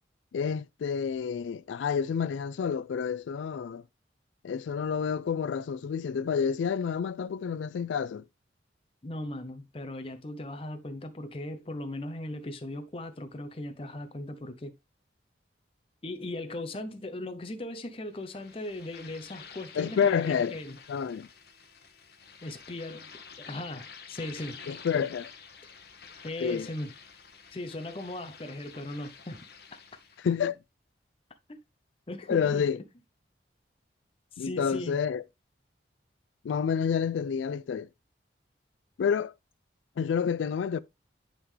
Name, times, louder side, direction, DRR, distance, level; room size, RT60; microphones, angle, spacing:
voice 1, 0.3-3.8 4.4-8.2 19.8-20.5 20.9-21.3 24.7-25.3 26.4-26.7 30.2-30.6 32.3-32.8 34.4-35.2 36.4-37.9 39.0-39.3 40.0-40.8, left 7 dB, 85° left, 0.3 m, -29 dB
voice 2, 9.0-14.7 16.0-20.8 22.4-23.1 23.4-24.6 26.2-26.9 27.5-29.4 31.5-31.6 32.1-32.7 34.3-35.0, left 1 dB, 30° left, 0.6 m, -38 dB
sound 1, 18.1-30.4, left 6 dB, 60° left, 1.1 m, -49 dB
9.9 x 3.7 x 3.2 m
head